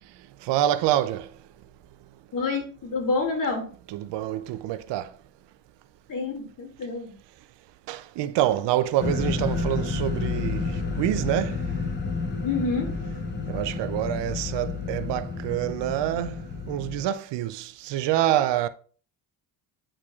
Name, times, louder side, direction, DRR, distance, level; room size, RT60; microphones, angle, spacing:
voice 1, 0.4-1.3 3.9-5.1 7.9-11.6 13.5-16.4 16.7-18.7, right 12 dB, 75° right, 0.6 m, -26 dB
voice 2, 2.3-3.7 6.1-7.1 12.4-12.9, left 4 dB, 50° left, 2.4 m, -28 dB
sound 1, 9.0-17.0, left 4 dB, 25° left, 1.0 m, -30 dB
8.7 x 4.8 x 2.4 m
cardioid pair, 125°, 43 cm